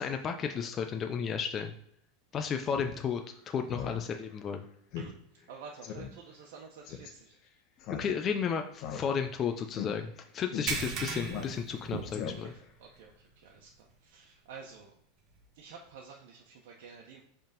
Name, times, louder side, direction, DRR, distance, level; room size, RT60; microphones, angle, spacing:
voice 1, 0.0-1.7 2.3-4.6 7.9-12.0, left 7 dB, 30° left, 5 dB, 0.6 m, -33 dB
Speech synthesizer, 2.7-2.9 3.3-3.4 3.7-4.0 4.3-4.4 4.9-5.1 5.4-5.5 5.8-6.1 6.8-7.1 7.8-8.4 8.8-9.4 9.7-9.9 10.5-10.6 11.3-11.8 12.1-12.6, left 8 dB, 55° left, 1.1 m, -39 dB
voice 2, 5.0-7.4 11.9-12.1 12.4-14.9 15.5-17.2, right 5 dB, 70° right, -1 dB, 1.1 m, -48 dB
sound 1, 10.7-12.5 12.9-13.1 13.6-13.7 15.3-15.4, right 5 dB, 50° right, 1.2 m, -37 dB
5.3 x 3.6 x 5.2 m, 0.69 s
supercardioid pair, 125°, 0 cm